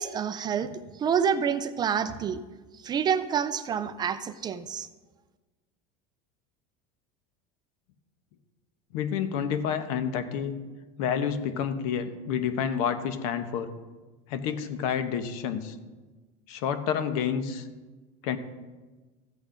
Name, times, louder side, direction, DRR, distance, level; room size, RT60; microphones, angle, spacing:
voice 1, 0.0-2.4 2.8-4.9, right 7 dB, 25° right, 12 dB, 0.4 m, -28 dB
voice 2, 8.9-10.5 11.0-13.7 14.3-15.7 16.5-17.7 18.2-18.4, left 7 dB, 75° left, 9 dB, 1.1 m, -29 dB
15.0 x 8.0 x 3.9 m, 1.3 s
supercardioid pair, 150°, 18 cm